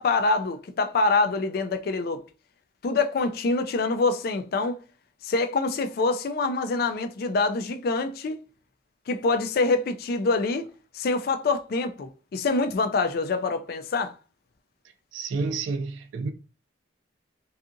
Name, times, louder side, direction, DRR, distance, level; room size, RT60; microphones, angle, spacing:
voice 1, 0.0-2.2 2.8-4.8 5.2-8.4 9.1-10.6 10.9-14.1, left 3 dB, 55° left, 0.3 m, -25 dB
voice 2, 15.1-16.3, right 4 dB, 80° right, 0.3 m, -29 dB
2.7 x 2.4 x 2.5 m
head